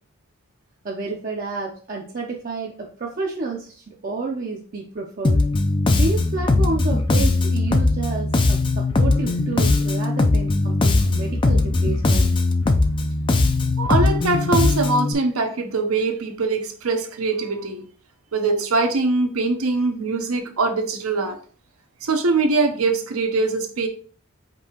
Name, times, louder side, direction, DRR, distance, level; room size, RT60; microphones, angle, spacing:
voice 1, 0.8-5.4 5.9-12.3, right 3 dB, 40° right, -1 dB, 0.5 m, -30 dB
Bass guitar, 5.2-15.1, left 2 dB, 25° left, 0.3 m, -19 dB
voice 2, 13.8-17.9 18.3-21.4 22.0-23.9, right 3 dB, 80° right, 6 dB, 0.8 m, -22 dB
5.2 x 2.8 x 2.9 m, 0.42 s
head